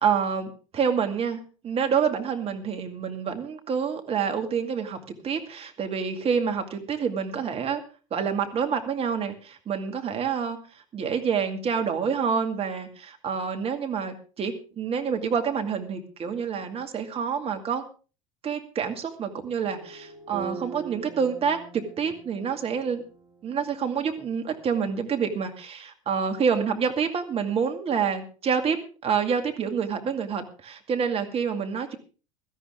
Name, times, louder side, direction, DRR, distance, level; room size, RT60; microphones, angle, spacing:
voice 1, 0.0-5.0 5.2-7.8 8.1-10.6 10.9-17.8 18.4-23.0 23.4-28.8 29.0-32.0, right 6 dB, 35° right, 5 dB, 2.3 m, -27 dB
sound 1, 19.6-24.0, right 5 dB, 60° right, 3.3 m, -42 dB
17.0 x 13.0 x 3.6 m, 0.35 s
figure-of-eight pair, 75°, 18 cm